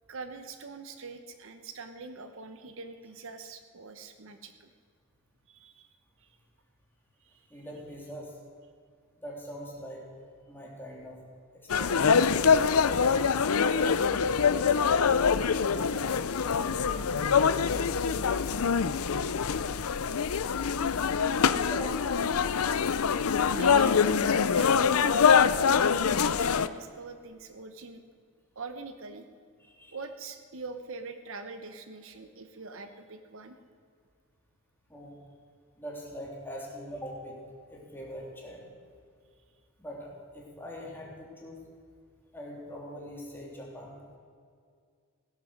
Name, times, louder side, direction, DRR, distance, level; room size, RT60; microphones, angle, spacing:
voice 1, 0.1-4.7 5.5-5.9 6.2-6.4 7.2-7.5 23.5-24.2 24.5-28.0 28.6-29.3 29.9-33.6, right 4 dB, 60° right, 8 dB, 0.9 m, -43 dB
voice 2, 7.5-8.3 9.2-10.0 10.5-11.2 11.8-12.1 13.2-13.9 14.2-14.6 15.0-17.1 21.4-22.4 29.6-30.0 34.9-35.1 35.8-37.4 37.7-38.6 39.8-41.6 42.3-43.9, equal, 10° left, -3 dB, 3.3 m, -43 dB
sound 1, 11.7-26.7, left 6 dB, 70° left, 0.5 m, -24 dB
17.0 x 11.0 x 6.4 m, 2.2 s
head